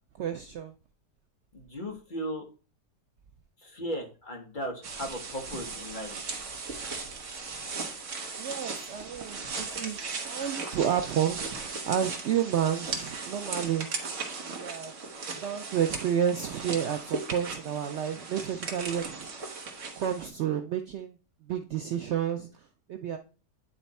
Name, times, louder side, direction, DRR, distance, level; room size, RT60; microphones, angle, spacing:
voice 1, 0.2-0.7 8.4-14.2 14.5-14.9 15.3-19.5 20.0-21.2 21.4-23.2, right 9 dB, 85° right, 6 dB, 0.6 m, -31 dB
voice 2, 1.5-2.4 3.6-6.1, equal, 30° left, 1 dB, 1.2 m, -36 dB
sound 1, 4.8-20.3, right 4 dB, 50° right, 1.4 m, -37 dB
9.2 x 3.3 x 4.1 m, 0.34 s
omnidirectional pair, 1.8 m